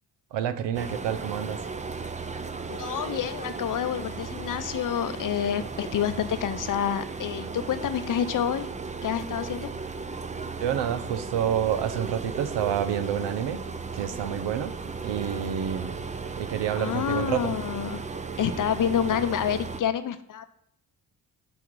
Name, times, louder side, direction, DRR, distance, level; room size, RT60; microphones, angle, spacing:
voice 1, 0.3-1.6 10.6-13.6 13.9-14.7 15.0-16.0 16.4-17.5, right 9 dB, 80° right, 11 dB, 0.7 m, -28 dB
sound 1, 0.7-19.8, right 4 dB, 15° right, 0.6 m, -36 dB
voice 2, 2.7-8.7 9.0-9.7 16.8-18.0 18.4-20.5, left 9 dB, 50° left, 12 dB, 0.7 m, -28 dB
5.9 x 5.2 x 4.6 m, 0.75 s
supercardioid pair, 65°, 42 cm